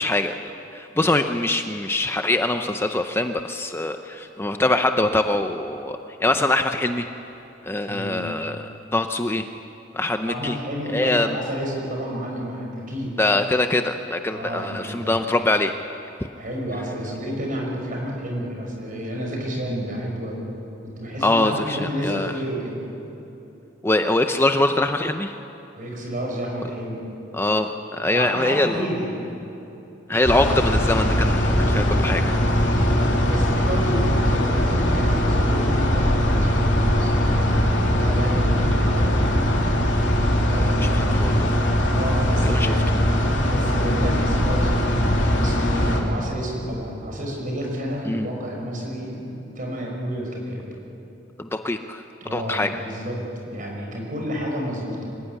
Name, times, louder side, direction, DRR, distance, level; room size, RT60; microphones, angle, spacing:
voice 1, 0.0-7.1 7.6-8.6 8.9-9.5 9.9-10.6 10.9-11.4 13.2-15.7 21.2-22.3 23.8-25.4 27.3-28.9 30.1-32.3 40.8-41.5 42.4-42.7 48.1-48.3 51.4-52.0 52.3-52.7, left 2 dB, 15° left, 7 dB, 0.6 m, -23 dB
voice 2, 7.9-8.3 10.3-13.1 14.3-15.2 16.4-20.5 20.8-22.8 25.7-27.0 28.0-29.3 32.8-39.3 40.4-41.1 41.9-42.8 43.4-50.6 52.2-53.2 53.4-55.0, equal, 45° right, -1 dB, 6.2 m, -30 dB
sound 1, 30.2-46.0, equal, 70° left, 3.2 m, -20 dB
25.0 x 15.5 x 9.9 m, 3.0 s
head